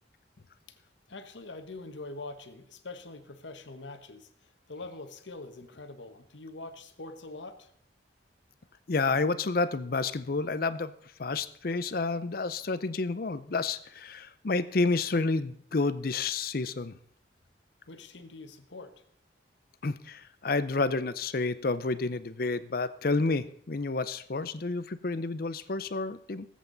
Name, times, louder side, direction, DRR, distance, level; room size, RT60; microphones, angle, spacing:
voice 1, 1.1-7.7 17.9-18.9, left 2 dB, 80° left, 8 dB, 1.2 m, -44 dB
voice 2, 8.9-10.9 11.2-16.9 19.8-26.5, left 3 dB, 50° left, 14 dB, 0.6 m, -30 dB
19.5 x 8.2 x 4.0 m, 0.65 s
head